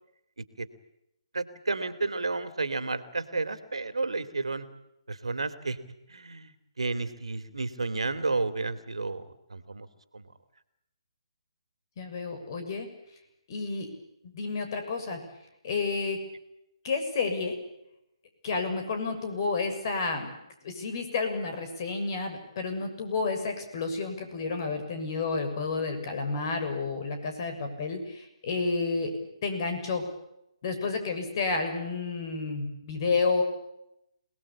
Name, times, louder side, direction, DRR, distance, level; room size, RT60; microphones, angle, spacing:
voice 1, 1.3-4.7 5.1-5.8 6.1-6.5 6.8-9.2 9.5-9.9 10.1-10.3, right 3 dB, 85° right, 11 dB, 2.7 m, -31 dB
voice 2, 12.0-12.9 13.5-13.9 14.3-15.2 15.6-16.2 16.8-17.6 18.4-20.3 20.6-29.1 29.4-30.1 30.6-33.4, left 4 dB, 45° left, 7 dB, 6.8 m, -30 dB
28.0 x 20.0 x 8.6 m, 0.84 s
figure-of-eight pair, 145°, 3 cm